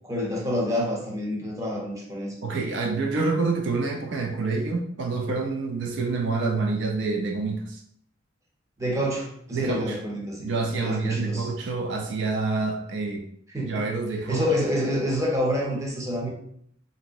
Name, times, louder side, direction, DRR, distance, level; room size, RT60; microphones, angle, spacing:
voice 1, 0.1-2.3 8.8-10.5 10.8-11.5 13.5-13.7 14.3-16.3, equal, 15° right, -2 dB, 0.6 m, -27 dB
voice 2, 2.4-7.8 9.5-10.0 10.4-13.2 13.6-14.4, right 3 dB, 65° right, 3 dB, 0.3 m, -27 dB
3.0 x 2.6 x 2.5 m, 0.68 s
head